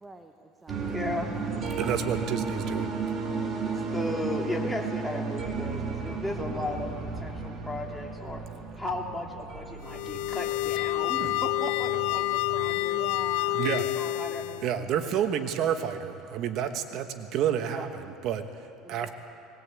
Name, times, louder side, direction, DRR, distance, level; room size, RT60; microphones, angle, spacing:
voice 1, 0.0-1.1 12.9-13.7 18.8-19.1, right 2 dB, 10° right, 5 dB, 1.0 m, -46 dB
sound 1, 0.7-15.8, right 4 dB, 35° right, 2.4 m, -35 dB
voice 2, 0.8-1.3 3.6-6.9 7.2-8.4 8.7-13.0 13.7-14.7 17.7-17.8, left 1 dB, 5° left, 0 dB, 2.5 m, -35 dB
voice 3, 1.7-2.9 11.2-11.3 13.5-13.9 14.6-18.4 18.9-19.1, right 9 dB, 50° right, 8 dB, 1.2 m, -29 dB
sound 2, 9.8-14.7, left 17 dB, 70° left, 0.5 m, -28 dB
20.5 x 20.0 x 8.3 m, 2.7 s
cardioid pair, 145°, 0 cm